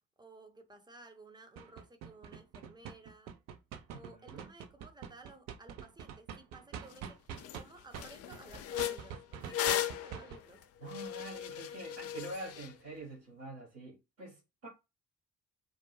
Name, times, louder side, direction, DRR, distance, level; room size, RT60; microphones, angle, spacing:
voice 1, 0.2-3.3 3.9-10.7, right 2 dB, 10° right, 0.7 m, -56 dB
sound 1, 1.6-7.6 7.9-10.4, right 8 dB, 50° right, 0.5 m, -45 dB
voice 2, 3.9-4.5 10.8-14.7, right 1 dB, 90° right, 0.9 m, -46 dB
sound 2, 6.9-7.0 7.4-7.6 7.9-12.7, left 11 dB, 45° left, 0.4 m, -37 dB
2.3 x 2.1 x 3.1 m
figure-of-eight pair, 40°, 35 cm